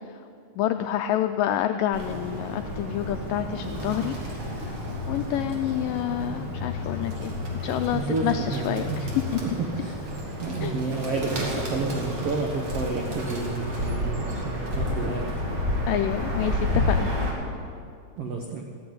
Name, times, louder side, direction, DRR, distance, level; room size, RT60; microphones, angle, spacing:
voice 1, 0.6-4.2 4.6-4.8 5.1-7.3 7.6-9.2 10.6-10.8 15.9-17.1, left 11 dB, 85° left, 7 dB, 1.9 m, -28 dB
Bird, 1.9-17.3, left 1 dB, 40° right, 2.8 m, -31 dB
voice 2, 7.9-9.2 9.4-10.0 10.4-15.3 18.2-18.6, right 4 dB, 80° right, 2 dB, 1.3 m, -30 dB
15.0 x 9.8 x 9.5 m, 2.3 s
omnidirectional pair, 4.4 m